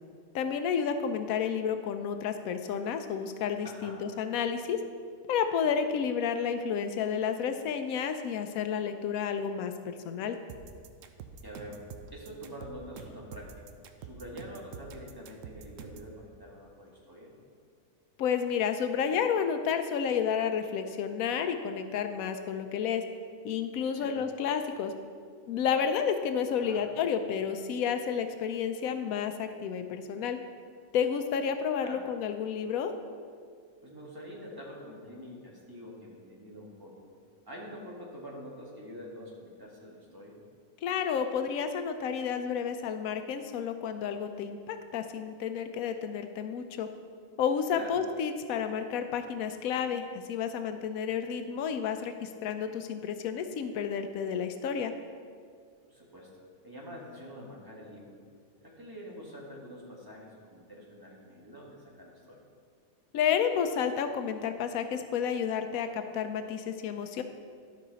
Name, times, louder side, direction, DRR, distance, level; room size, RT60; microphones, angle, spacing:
voice 1, 0.3-4.8 5.3-10.4 18.2-23.0 23.4-24.9 25.5-30.4 30.9-32.9 40.8-46.9 47.4-54.9 63.1-67.2, left 7 dB, 90° left, 8 dB, 1.0 m, -31 dB
voice 2, 3.6-4.0 11.4-11.8 12.1-13.6 14.0-17.3 23.9-24.2 26.6-26.9 31.8-32.0 33.8-37.0 37.5-40.4 47.7-47.9 55.9-58.2 58.6-62.4, equal, 15° right, -3 dB, 1.5 m, -46 dB
sound 1, 10.5-16.1, right 6 dB, 70° right, 0.9 m, -46 dB
12.5 x 5.6 x 4.0 m, 2.1 s
omnidirectional pair, 1.4 m